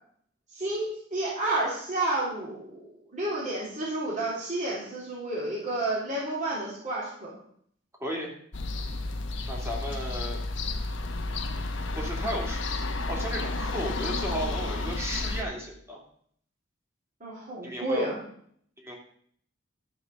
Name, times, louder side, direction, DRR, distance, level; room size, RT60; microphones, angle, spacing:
voice 1, 0.5-7.3 9.9-10.0 17.2-18.2, right 2 dB, 40° right, -6 dB, 3.4 m, -31 dB
voice 2, 8.0-8.3 9.5-10.4 11.9-16.0 17.6-18.1 18.8-19.0, equal, 15° right, -2 dB, 2.9 m, -34 dB
sound 1, 8.5-15.4, left 2 dB, 65° left, 1.1 m, -31 dB
12.5 x 5.6 x 6.7 m, 0.64 s
head